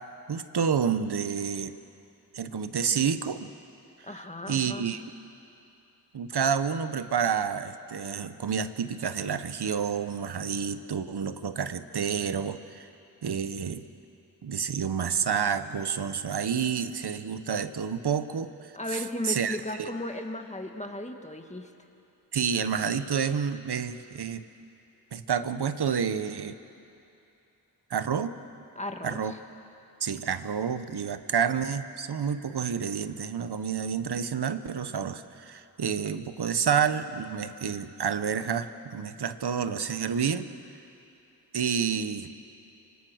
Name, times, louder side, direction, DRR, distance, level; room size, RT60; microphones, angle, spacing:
voice 1, 0.3-1.8 2.3-3.5 4.5-5.0 6.1-12.9 13.2-13.8 14.4-19.9 22.3-24.4 25.1-26.6 27.9-28.3 29.0-29.3 30.0-40.5 41.5-42.3, right 7 dB, 75° right, 11 dB, 1.0 m, -29 dB
voice 2, 4.0-4.9 18.7-21.7 28.8-29.4, left 1 dB, 15° left, 4 dB, 1.9 m, -35 dB
25.5 x 25.0 x 6.4 m, 2.7 s
wide cardioid pair, 80°, 40 cm